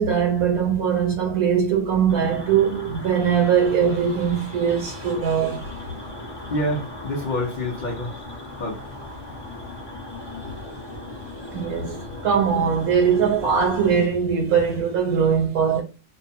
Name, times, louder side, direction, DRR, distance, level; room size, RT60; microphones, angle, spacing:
voice 1, 0.0-5.6 11.5-12.0 12.2-15.8, right 7 dB, 75° right, 1.3 m, -21 dB
sound 1, 2.1-13.9, left 2 dB, 20° left, 0.7 m, -37 dB
voice 2, 6.5-8.2 8.5-8.8, left 1 dB, 55° left, 0.5 m, -27 dB
2.7 x 2.2 x 2.7 m
omnidirectional pair, 1.6 m